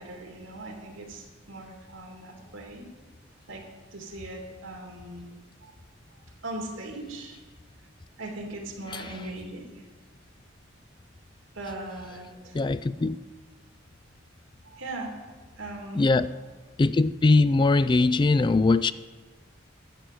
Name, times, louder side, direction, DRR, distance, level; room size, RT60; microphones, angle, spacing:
voice 1, 0.0-2.9 3.5-5.3 5.6-5.7 6.4-7.4 8.2-9.8 11.5-12.6 14.7-15.3 15.6-16.3, right 2 dB, 90° right, 1 dB, 2.8 m, -39 dB
voice 2, 12.5-13.2 16.0-16.3 16.8-18.9, left 3 dB, 25° left, 15 dB, 0.3 m, -21 dB
11.5 x 8.8 x 7.8 m, 1.4 s
head